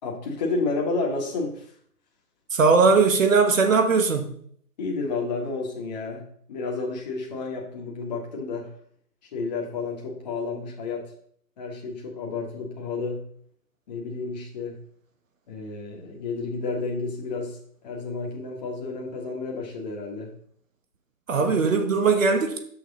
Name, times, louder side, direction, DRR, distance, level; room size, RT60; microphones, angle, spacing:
voice 1, 0.0-1.7 4.8-8.7 9.3-11.1 11.6-13.2 13.9-14.8 15.5-20.3 21.4-21.5, left 3 dB, 25° left, 1.5 m, -31 dB
voice 2, 2.5-4.3 21.3-22.6, right 4 dB, 50° right, 1.3 m, -19 dB
7.4 x 6.0 x 4.0 m
hypercardioid pair, 160°, 49 cm